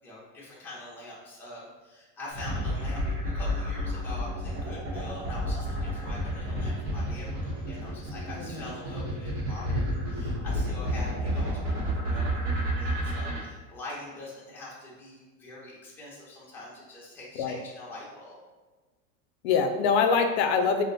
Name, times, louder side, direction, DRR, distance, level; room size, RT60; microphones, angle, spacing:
voice 1, 0.0-18.4, left 1 dB, 5° left, -7 dB, 0.5 m, -44 dB
sound 1, 2.3-13.4, equal, 70° right, 1.0 m, -31 dB
voice 2, 19.4-20.8, left 5 dB, 80° left, 6 dB, 0.5 m, -24 dB
2.5 x 2.1 x 3.9 m, 1.2 s
supercardioid pair, 160°, 32 cm